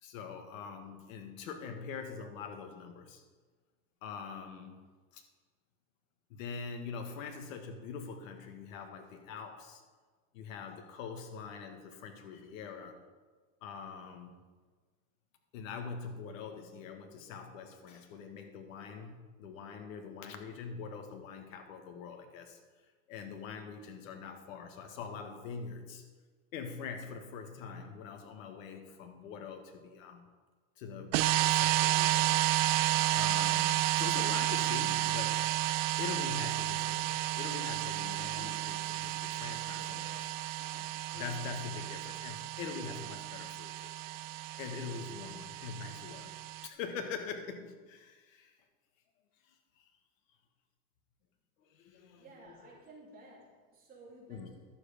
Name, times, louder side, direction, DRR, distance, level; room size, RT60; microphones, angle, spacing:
voice 1, 0.0-3.2 4.0-4.8 5.1-5.2 6.3-9.8 10.3-13.0 13.6-14.4 15.5-22.6 23.1-26.0 26.5-30.3 30.8-32.3 33.1-35.4 36.0-43.9 44.5-46.4 46.6-48.5 49.5-49.8 51.6-52.2 54.3-54.5, left 5 dB, 75° left, 6 dB, 1.6 m, -43 dB
sound 1, 31.1-46.7, right 16 dB, 70° right, 0.6 m, -32 dB
voice 2, 51.9-54.7, right 2 dB, 20° right, -5 dB, 3.3 m, -55 dB
11.5 x 7.3 x 5.0 m, 1.4 s
supercardioid pair, 145°, 40 cm